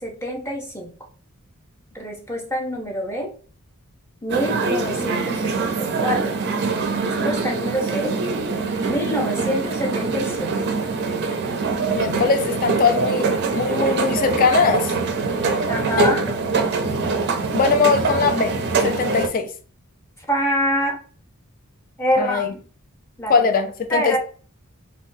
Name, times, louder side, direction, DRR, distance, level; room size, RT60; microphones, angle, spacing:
voice 1, 0.0-0.9 1.9-3.3 4.2-6.4 6.9-8.2 8.8-10.5 15.7-16.2 20.3-21.0 22.0-22.6 23.2-23.5 23.9-24.2, equal, 10° left, 0.8 m, -26 dB
sound 1, 4.3-19.3, right 4 dB, 50° right, 0.4 m, -23 dB
voice 2, 11.9-13.3 13.5-14.9 16.0-16.1 17.5-18.5 18.8-19.5 22.2-22.5 23.3-24.2, left 5 dB, 40° left, 0.4 m, -20 dB
3.5 x 2.2 x 2.6 m
head